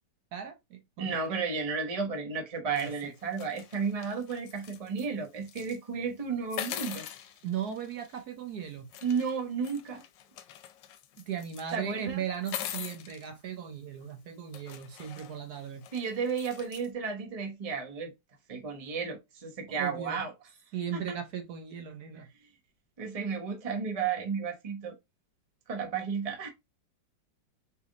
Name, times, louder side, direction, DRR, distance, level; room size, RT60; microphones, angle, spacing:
voice 1, 0.3-1.4 2.7-3.1 7.4-8.9 11.2-15.9 19.7-20.2 20.7-22.3, right 9 dB, 65° right, 1.2 m, -37 dB
voice 2, 1.0-7.1 9.0-10.0 11.7-12.2 15.9-18.1 18.5-20.3 20.9-21.2 23.0-24.9 25.7-26.5, right 5 dB, 25° right, 0.9 m, -33 dB
sound 1, 2.8-5.1 5.4-5.8 6.5-8.2 8.9-11.8 12.3-13.3 14.0-14.1 14.5-16.9, left 11 dB, 80° left, 1.3 m, -43 dB
4.7 x 3.5 x 2.4 m
omnidirectional pair, 1.9 m